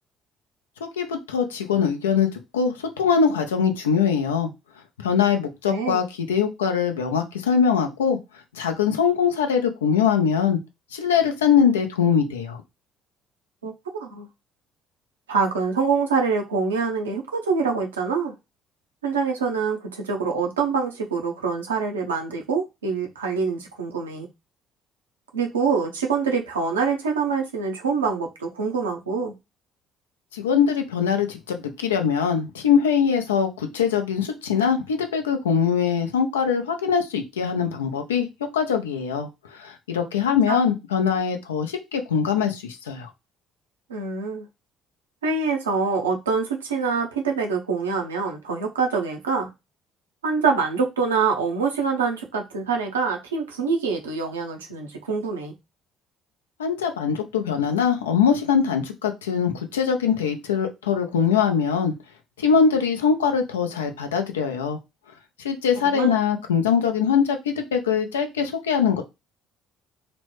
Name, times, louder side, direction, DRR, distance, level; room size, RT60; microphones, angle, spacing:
voice 1, 0.8-2.3 2.5-4.5 5.0-8.2 8.5-10.6 10.9-12.6 30.3-38.3 38.5-39.3 39.6-43.1 56.6-61.9 62.4-64.8 65.4-69.0, left 7 dB, 85° left, 0.5 m, -22 dB
voice 2, 5.7-6.0 13.6-14.3 15.3-18.3 19.0-24.3 25.3-29.3 40.5-40.6 43.9-44.5 45.2-49.5 50.2-55.5 65.9-66.1, right 5 dB, 85° right, 0.6 m, -25 dB
3.0 x 2.1 x 3.1 m
hypercardioid pair, 55°, 0 cm